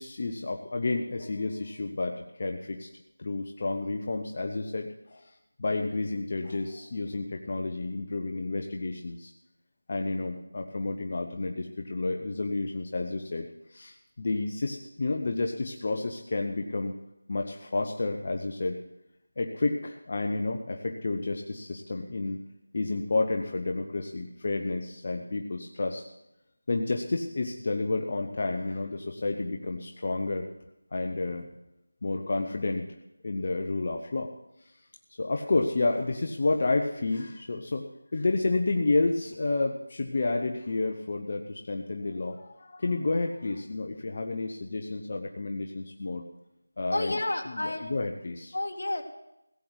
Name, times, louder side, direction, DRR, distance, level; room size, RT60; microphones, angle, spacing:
voice 1, 0.0-2.9 3.2-5.3 5.6-9.3 9.9-16.9 17.3-18.8 19.4-22.4 22.7-26.1 26.7-30.5 30.9-31.5 32.0-32.9 33.2-34.3 35.2-46.3 46.8-47.2 47.5-48.5, left 3 dB, 40° left, 4 dB, 1.0 m, -30 dB
voice 2, 46.9-47.9 48.5-49.0, left 1 dB, 70° left, 4 dB, 2.2 m, -30 dB
16.5 x 7.8 x 8.2 m, 0.88 s
figure-of-eight pair, 170°, 0 cm